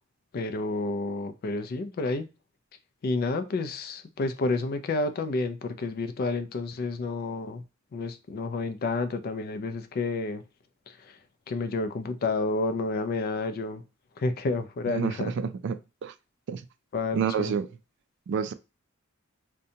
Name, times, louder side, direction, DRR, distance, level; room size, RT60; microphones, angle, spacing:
voice 1, 0.3-2.3 3.0-7.6 7.9-10.4 10.9-11.2 11.5-13.8 14.2-15.3 16.9-17.6, left 3 dB, 45° left, 0.4 m, -30 dB
voice 2, 14.9-16.1 16.5-16.6 17.1-17.7 18.3-18.5, right 7 dB, 60° right, 0.3 m, -29 dB
2.6 x 2.2 x 2.7 m
head